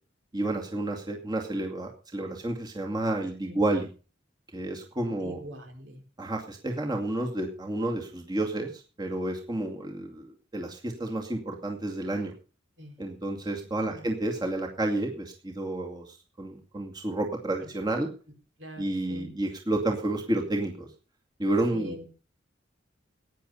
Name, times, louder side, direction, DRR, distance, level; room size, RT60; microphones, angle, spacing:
voice 1, 0.3-3.9 4.5-5.4 6.2-12.3 13.0-18.1 18.8-20.9 21.4-22.0, right 1 dB, 20° right, 1 dB, 2.3 m, -30 dB
voice 2, 5.1-6.0 12.8-13.0 13.8-14.1 17.6-17.7 18.6-19.3 21.7-22.2, equal, 70° right, 4 dB, 4.5 m, -43 dB
17.0 x 9.9 x 5.5 m, 0.38 s
head